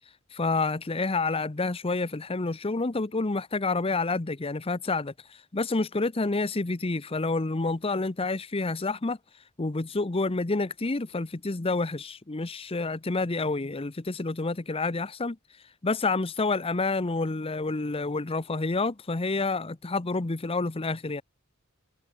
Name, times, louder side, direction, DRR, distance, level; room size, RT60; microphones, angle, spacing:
voice 1, 0.3-5.1 5.5-9.2 9.6-15.4 15.8-21.2, left 3 dB, 25° left, 0.8 m, -28 dB
head